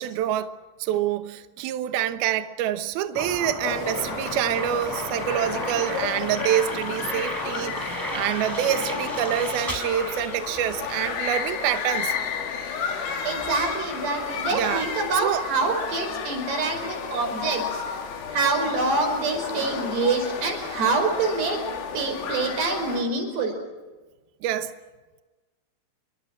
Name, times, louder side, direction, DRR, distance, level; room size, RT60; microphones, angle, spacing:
voice 1, 0.0-12.2 14.5-14.8 15.2-15.4 24.4-24.7, right 11 dB, 75° right, 2.2 m, -26 dB
sound 1, 3.1-10.9, equal, 5° left, 5.0 m, -34 dB
sound 2, 3.6-23.0, left 6 dB, 85° left, 5.6 m, -32 dB
voice 2, 13.2-17.8 18.3-21.6 21.9-23.6, right 3 dB, 55° right, 6.9 m, -26 dB
28.5 x 23.0 x 6.2 m
omnidirectional pair, 5.8 m